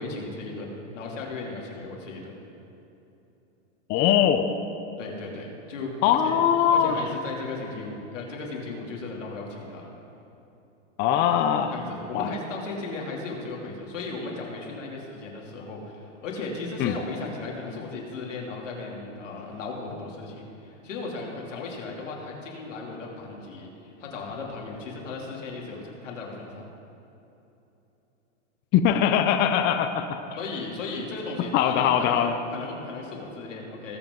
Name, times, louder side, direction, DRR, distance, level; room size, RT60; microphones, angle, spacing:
voice 1, 0.0-2.4 5.0-6.4 6.7-9.9 11.7-26.7 30.4-32.2 32.5-34.0, left 3 dB, 85° left, -1 dB, 2.8 m, -36 dB
voice 2, 3.9-4.5 6.0-6.9 11.0-11.7 12.1-12.3 16.8-16.9 28.7-30.1 31.5-32.4, left 9 dB, 30° left, 7 dB, 0.6 m, -21 dB
21.0 x 7.7 x 3.8 m, 2.9 s
hypercardioid pair, 135°, 36 cm